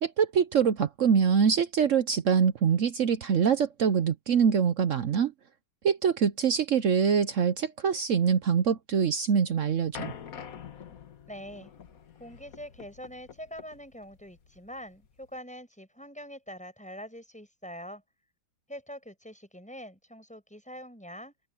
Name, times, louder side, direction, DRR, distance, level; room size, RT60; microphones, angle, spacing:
voice 1, 0.0-5.3 5.8-10.1, right 7 dB, 70° right, 0.7 m, -24 dB
sound 1, 9.9-15.4, left 7 dB, 50° left, 1.5 m, -46 dB
voice 2, 11.3-11.7 12.2-18.0 18.7-21.3, equal, 5° left, 6.3 m, -44 dB
open air
omnidirectional pair, 2.3 m